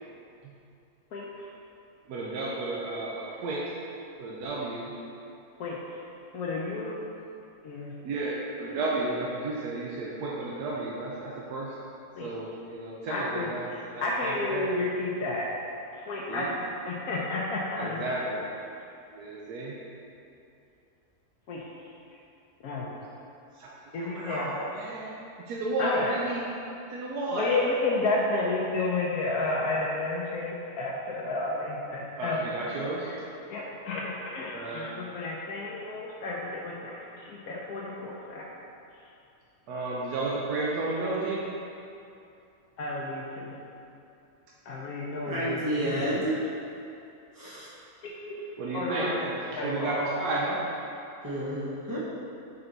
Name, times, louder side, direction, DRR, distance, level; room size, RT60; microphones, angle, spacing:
voice 1, 2.1-3.7 4.2-5.0 8.0-11.7 12.2-14.7 16.3-16.5 17.8-18.5 19.1-19.8 23.5-23.7 24.0-26.4 26.9-27.6 32.1-33.1 34.5-34.9 39.7-41.4 48.6-50.6, right 2 dB, 90° right, -4 dB, 1.2 m, -32 dB
voice 2, 5.6-6.0 6.3-7.0 7.6-7.9 12.2-12.3 13.1-15.5 15.9-16.5 16.7-18.2 21.5-21.6 22.6-22.9 23.9-24.6 25.8-26.1 27.3-32.7 33.0-33.2 33.5-38.5 42.8-43.5 44.7-46.2 48.0-49.1 49.5-50.0, left 2 dB, 75° left, -4 dB, 1.1 m, -31 dB
voice 3, 45.2-46.4 47.3-47.7 51.2-52.0, right 1 dB, 25° right, -9 dB, 0.4 m, -30 dB
5.6 x 4.3 x 3.9 m, 2.6 s
omnidirectional pair, 1.6 m